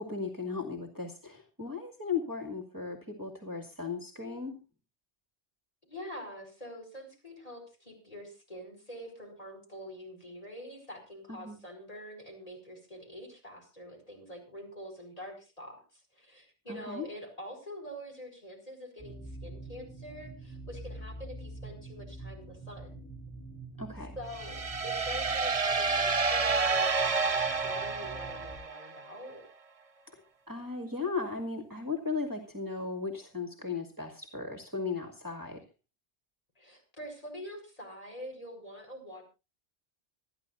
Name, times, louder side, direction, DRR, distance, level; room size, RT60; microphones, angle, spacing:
voice 1, 0.0-4.6 11.3-11.6 16.7-17.1 23.8-24.2 30.1-30.2 30.5-35.6, left 4 dB, 20° right, 4 dB, 2.1 m, -36 dB
voice 2, 5.8-23.1 24.1-29.4 36.6-39.2, equal, 35° left, 2 dB, 5.1 m, -46 dB
sound 1, 19.0-28.6, right 2 dB, 5° left, 6.6 m, -46 dB
sound 2, 24.3-29.0, right 4 dB, 35° right, 0.9 m, -29 dB
26.0 x 10.5 x 2.6 m, 0.29 s
omnidirectional pair, 1.1 m